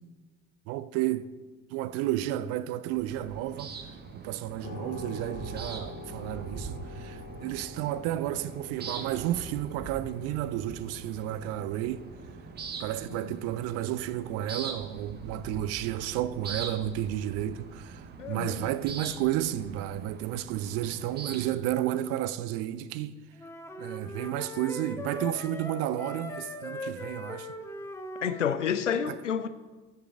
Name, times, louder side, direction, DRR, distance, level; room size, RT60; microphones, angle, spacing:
voice 1, 0.7-1.3 1.7-3.7 4.1-12.0 12.8-23.2 23.8-27.5 29.1-29.2, right 13 dB, 45° right, 0.5 m, -32 dB
sound 1, 2.9-21.5, right 5 dB, 30° right, 1.1 m, -43 dB
sound 2, 4.6-19.3, left 3 dB, 50° left, 1.7 m, -48 dB
voice 2, 18.2-18.7 28.2-29.5, left 8 dB, 85° left, 0.5 m, -30 dB
sound 3, 23.4-28.6, left 1 dB, 5° left, 0.9 m, -40 dB
12.5 x 6.7 x 3.6 m
figure-of-eight pair, 65°, 36 cm